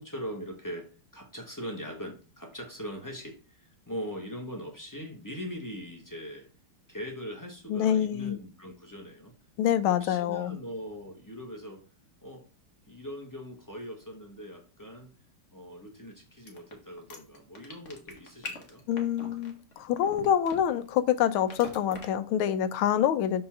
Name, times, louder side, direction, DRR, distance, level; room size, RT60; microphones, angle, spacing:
voice 1, 0.0-6.5 6.9-9.3 10.0-11.8 12.2-12.4 12.9-15.1 15.5-18.8, equal, 15° left, 0.7 m, -41 dB
voice 2, 7.7-8.4 9.6-10.6 18.9-23.4, left 10 dB, 80° left, 1.4 m, -26 dB
sound 1, 16.5-20.9 21.5-22.1, left 3 dB, 40° left, 1.5 m, -41 dB
5.5 x 3.8 x 5.8 m
omnidirectional pair, 2.3 m